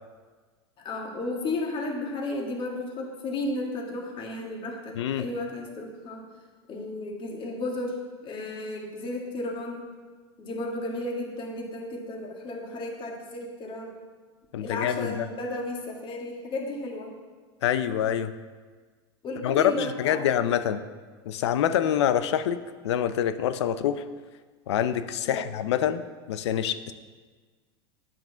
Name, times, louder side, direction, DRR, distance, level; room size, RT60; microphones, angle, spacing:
voice 1, 0.8-6.2 6.7-9.8 10.4-13.9 14.6-17.1 19.2-20.2 25.3-25.5, left 2 dB, 35° left, 0 dB, 1.9 m, -33 dB
voice 2, 5.0-5.3 14.5-15.3 17.6-18.3 19.4-20.8 21.3-24.0 24.7-26.0 26.3-26.9, left 10 dB, 80° left, 12 dB, 0.6 m, -26 dB
9.3 x 5.9 x 5.7 m, 1.5 s
hypercardioid pair, 110°, 14 cm